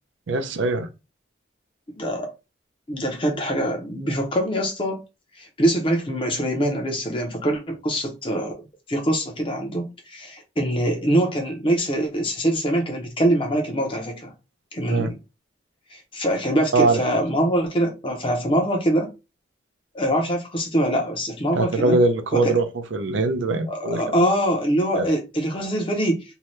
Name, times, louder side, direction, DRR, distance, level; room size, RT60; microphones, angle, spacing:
voice 1, 0.3-0.9 14.9-15.1 16.7-17.0 21.5-22.7 22.9-24.0 25.0-25.1, right 3 dB, 75° right, 0.5 m, -21 dB
voice 2, 2.0-2.3 2.9-5.0 5.4-8.6 8.9-14.3 14.7-15.2 15.9-19.1 19.9-22.0 22.3-22.5 23.7-26.2, right 1 dB, 25° left, 0.6 m, -23 dB
2.7 x 2.2 x 3.1 m
head